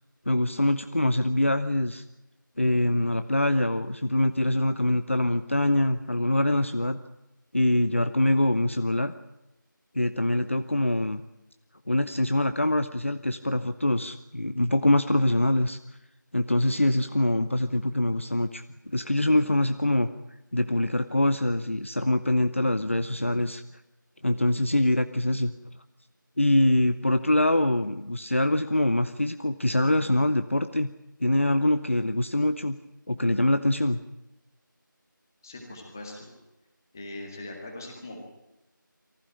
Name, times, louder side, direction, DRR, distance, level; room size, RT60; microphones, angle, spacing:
voice 1, 0.3-2.0 2.6-7.0 7.5-9.1 9.9-11.2 11.9-15.8 16.3-18.6 18.9-20.1 20.5-23.6 24.2-25.5 26.4-30.9 31.2-32.8 33.1-34.0, left 1 dB, 40° left, 9 dB, 0.8 m, -24 dB
voice 2, 35.4-36.3 36.9-38.2, left 2 dB, 10° left, 1 dB, 2.0 m, -40 dB
23.5 x 15.5 x 9.9 m, 0.94 s
figure-of-eight pair, 175°, 11 cm